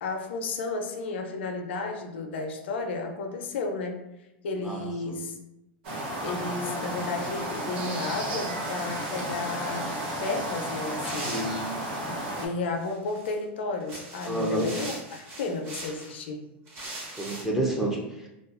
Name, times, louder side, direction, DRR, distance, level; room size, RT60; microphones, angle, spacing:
voice 1, 0.0-4.0 4.4-5.3 6.2-9.9 10.2-11.3 12.0-12.2 12.4-16.4, left 3 dB, 85° left, 4 dB, 0.4 m, -33 dB
voice 2, 4.6-5.2 11.2-11.7 14.3-14.7 17.2-18.3, right 1 dB, 5° right, -2 dB, 0.4 m, -29 dB
sound 1, 5.8-12.5, right 1 dB, 70° right, 0.7 m, -33 dB
sound 2, 11.0-12.0 12.8-13.3 13.8-16.1 16.7-17.4, right 1 dB, 40° right, 0.9 m, -40 dB
2.5 x 2.3 x 2.4 m, 0.92 s
supercardioid pair, 130°, 6 cm